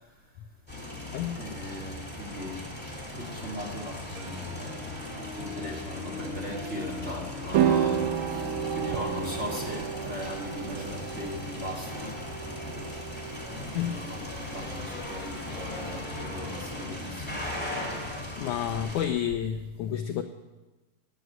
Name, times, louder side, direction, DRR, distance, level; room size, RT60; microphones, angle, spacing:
sound 1, 0.7-19.1, left 2 dB, 5° left, 2.8 m, -38 dB
voice 1, 1.4-2.6 3.2-4.7 5.1-8.0 8.3-8.5 8.7-12.1 12.5-12.8 13.8-17.4 18.0-18.3, left 1 dB, 20° right, 0 dB, 2.4 m, -38 dB
Harp, 4.1-11.0, left 3 dB, 35° right, 1.4 m, -43 dB
sound 2, 7.5-16.0, right 10 dB, 80° right, 2.4 m, -32 dB
voice 2, 18.4-20.2, left 10 dB, 80° left, 8 dB, 1.8 m, -30 dB
16.5 x 9.3 x 9.4 m, 1.2 s
omnidirectional pair, 4.3 m